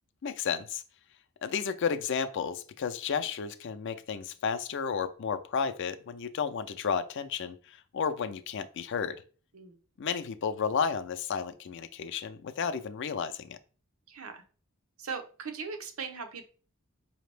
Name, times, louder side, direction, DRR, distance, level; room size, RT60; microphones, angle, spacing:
voice 1, 0.2-0.8 1.4-9.2 10.0-13.6, left 6 dB, 60° left, 10 dB, 0.4 m, -32 dB
voice 2, 14.1-14.4 15.0-16.4, right 5 dB, 85° right, 6 dB, 0.7 m, -39 dB
5.0 x 2.8 x 3.3 m, 0.39 s
head